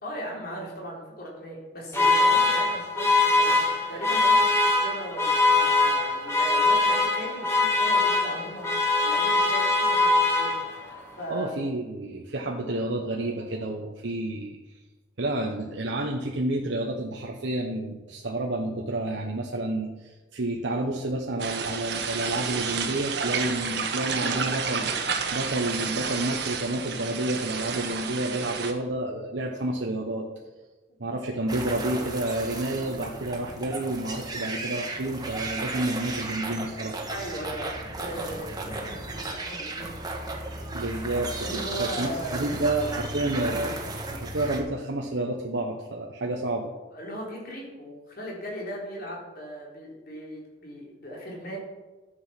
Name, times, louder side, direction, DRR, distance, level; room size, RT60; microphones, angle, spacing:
voice 1, 0.0-8.7 9.0-10.8 11.2-11.5 37.1-40.1 41.4-42.5 46.9-51.6, equal, 55° left, -2 dB, 3.9 m, -38 dB
sound 1, 1.9-10.9, left 3 dB, 15° left, 2.2 m, -22 dB
voice 2, 11.3-14.6 15.2-24.9 25.3-30.3 31.0-37.0 40.7-46.7, right 1 dB, 85° right, 0 dB, 1.1 m, -30 dB
sound 2, 21.4-28.7, right 5 dB, 65° right, 1.4 m, -30 dB
sound 3, 31.5-44.6, right 2 dB, 20° right, 1.6 m, -35 dB
12.5 x 8.0 x 5.9 m, 1.2 s
head